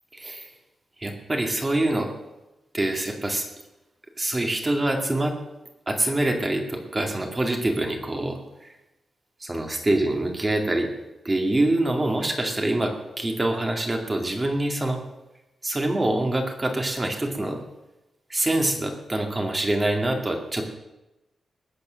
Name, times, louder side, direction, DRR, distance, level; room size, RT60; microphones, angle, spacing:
voice 1, 0.1-0.5 1.0-2.1 2.7-3.5 4.2-5.4 5.9-8.8 9.4-10.9 11.2-15.0 15.6-17.6 18.3-20.8, right 1 dB, 20° right, 3 dB, 2.3 m, -25 dB
20.0 x 8.6 x 6.4 m, 0.98 s
wide cardioid pair, 150°, 0 cm